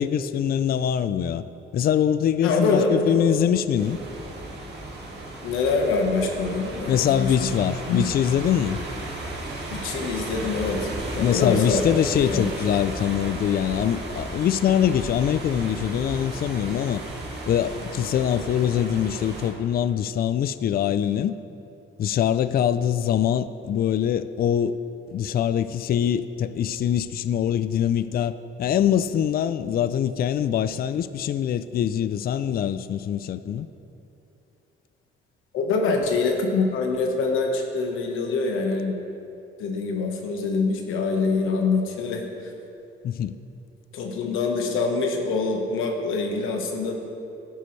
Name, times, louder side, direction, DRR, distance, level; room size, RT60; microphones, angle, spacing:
voice 1, 0.0-1.4 1.7-4.0 6.9-8.8 11.2-17.0 17.5-21.3 22.0-24.8 25.1-33.7 43.0-43.3, left 9 dB, 50° left, 13 dB, 0.4 m, -23 dB
voice 2, 2.4-3.3 5.4-7.5 7.9-8.0 9.7-10.9 11.1-11.8 12.3-12.4 35.5-38.9 39.6-42.5 43.9-46.9, left 4 dB, 85° left, 2 dB, 1.3 m, -25 dB
sound 1, 3.8-19.5, right 2 dB, 55° right, 2.1 m, -35 dB
13.0 x 10.0 x 3.2 m, 2.8 s
cardioid pair, 90°, 20 cm